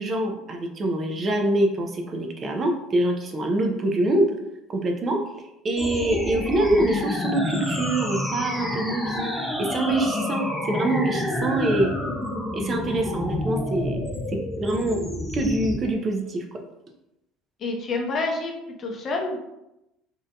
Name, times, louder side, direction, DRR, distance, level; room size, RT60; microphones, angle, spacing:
voice 1, 0.0-4.4 4.7-5.2 5.6-11.9 12.5-15.0 15.3-16.4, right 1 dB, 40° right, 3 dB, 0.4 m, -25 dB
sound 1, 5.8-15.8, left 1 dB, 5° left, 0.8 m, -29 dB
voice 2, 17.6-18.5 18.8-19.4, left 3 dB, 45° left, 1 dB, 0.6 m, -27 dB
2.6 x 2.1 x 2.6 m, 0.88 s
supercardioid pair, 85°, 0 cm